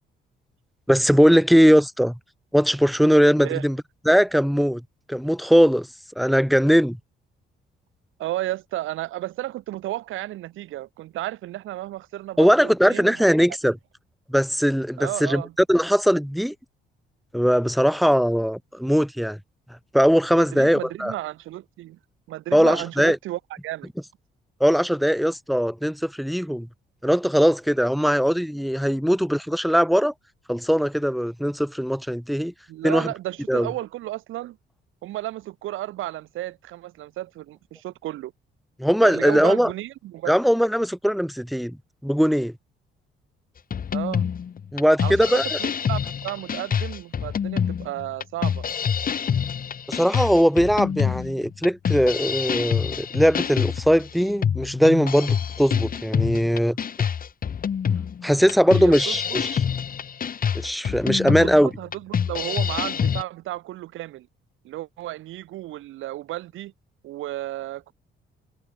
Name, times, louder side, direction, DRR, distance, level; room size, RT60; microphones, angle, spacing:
voice 1, 0.9-2.2 2.5-3.8 4.1-4.8 5.1-5.9 6.2-7.0 12.4-13.8 14.3-15.4 15.7-16.5 17.3-19.4 19.9-21.1 22.5-23.2 24.6-26.7 27.0-30.1 30.5-32.5 32.8-33.1 33.5-33.7 38.8-39.7 40.3-41.8 42.0-42.5 44.7-45.4 49.9-56.8 58.2-59.6 60.5-61.7, equal, ahead, 0.9 m, -20 dB
voice 2, 8.2-13.2 15.0-15.5 20.4-22.0 22.3-23.9 32.7-34.6 35.0-38.3 39.0-40.4 43.9-44.3 45.0-48.6 58.7-59.4 61.3-64.3 64.6-66.7 67.0-67.9, right 15 dB, 80° right, 1.0 m, -33 dB
sound 1, 43.7-63.2, left 7 dB, 45° left, 1.6 m, -26 dB
cardioid pair, 90°, 20 cm